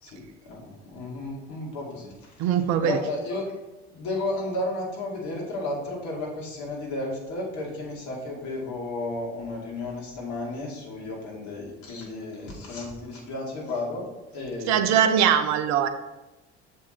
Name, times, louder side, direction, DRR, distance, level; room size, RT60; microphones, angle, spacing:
voice 1, 0.0-2.5 2.8-3.4 3.9-14.1 14.3-15.0, left 2 dB, 60° left, -3 dB, 2.2 m, -33 dB
voice 2, 2.4-3.0 14.7-15.9, right 9 dB, 55° right, 9 dB, 0.6 m, -21 dB
6.9 x 4.6 x 4.4 m, 1.0 s
hypercardioid pair, 60°, 33 cm